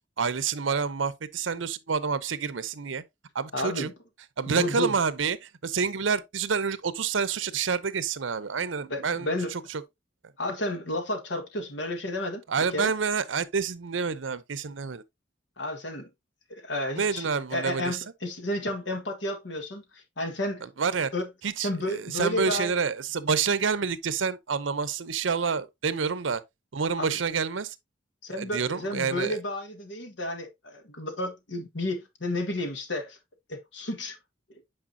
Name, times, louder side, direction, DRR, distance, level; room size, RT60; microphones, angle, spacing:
voice 1, 0.2-3.0 3.3-3.9 4.4-9.8 12.5-15.0 17.0-18.0 20.8-21.1 21.4-26.4 26.7-27.7 28.3-29.4, right 5 dB, 85° right, 0.7 m, -28 dB
voice 2, 3.5-3.9 4.5-5.0 8.9-9.5 10.4-12.4 12.7-12.9 15.6-16.1 16.5-20.7 21.1-21.3 21.6-22.7 27.0-27.2 28.2-33.2 33.5-34.2, left 1 dB, 70° left, 1.5 m, -32 dB
8.8 x 4.8 x 2.7 m
head